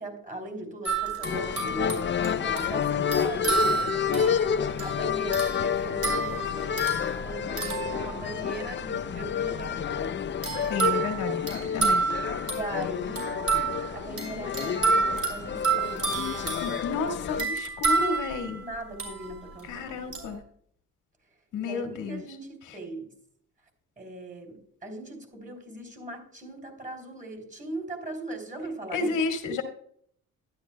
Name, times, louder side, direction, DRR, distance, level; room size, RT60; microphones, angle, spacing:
voice 1, 0.0-2.1 2.4-4.4 4.8-10.2 12.4-13.3 13.9-16.1 17.3-17.5 18.6-20.2 21.6-23.1 24.0-29.2, right 1 dB, 25° right, 3.4 m, -39 dB
sound 1, 0.8-8.7 10.4-19.6 20.1-20.3, right 4 dB, 50° right, 4.5 m, -30 dB
sound 2, 1.2-17.4, left 8 dB, 40° left, 0.5 m, -30 dB
voice 2, 10.7-12.0 16.6-18.6 19.6-20.4 21.5-22.2 22.7-22.8 28.9-29.6, left 4 dB, 85° left, 1.8 m, -31 dB
12.0 x 10.5 x 2.2 m
cardioid pair, 90°, 30 cm